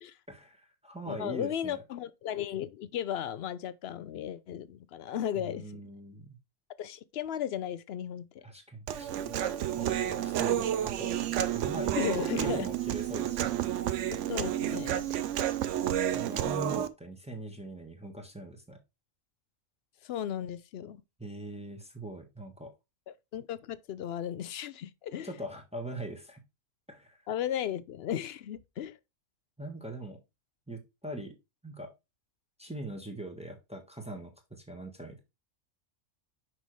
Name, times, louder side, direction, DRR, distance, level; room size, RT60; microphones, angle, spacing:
voice 1, 0.3-1.8 5.4-6.4 8.4-9.4 9.8-13.6 16.1-18.8 21.2-22.7 25.2-26.4 26.9-27.2 29.6-30.2 30.7-31.3 31.6-31.9 32.6-35.2, right 1 dB, 5° right, 1.3 m, -41 dB
voice 2, 1.1-5.8 6.8-8.4 12.0-12.7 14.1-15.1 20.0-21.0 23.1-25.3 27.3-29.0, left 10 dB, 65° left, 0.7 m, -35 dB
Human voice, 8.9-16.9, right 11 dB, 75° right, 0.9 m, -30 dB
6.1 x 5.5 x 3.2 m
omnidirectional pair, 1.3 m